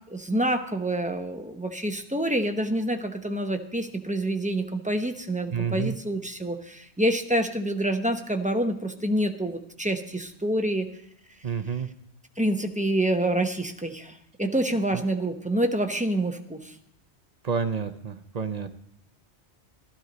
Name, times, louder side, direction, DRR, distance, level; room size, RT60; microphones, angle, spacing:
voice 1, 0.1-10.9 12.4-16.7, right 1 dB, 10° right, 5 dB, 0.7 m, -27 dB
voice 2, 5.5-5.9 11.4-11.9 14.9-15.0 17.4-18.7, right 6 dB, 45° right, 9 dB, 0.7 m, -29 dB
13.0 x 12.5 x 4.0 m, 0.71 s
omnidirectional pair, 1.1 m